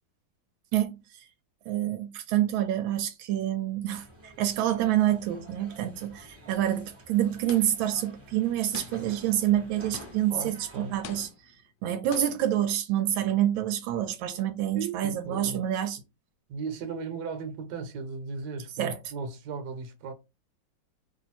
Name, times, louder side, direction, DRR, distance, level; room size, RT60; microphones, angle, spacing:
voice 1, 0.7-1.3 1.7-11.5 11.8-16.0 18.8-19.0, right 12 dB, 85° right, 1.4 m, -27 dB
sound 1, 3.9-11.3, equal, 10° right, 0.8 m, -50 dB
sound 2, 7.5-8.0 8.7-9.3 9.9-10.5 11.0-11.6 12.1-12.5, left 7 dB, 70° left, 1.0 m, -44 dB
voice 2, 10.3-10.9 14.7-15.7 16.5-20.1, right 4 dB, 65° right, 1.4 m, -36 dB
3.1 x 2.6 x 4.2 m
omnidirectional pair, 2.1 m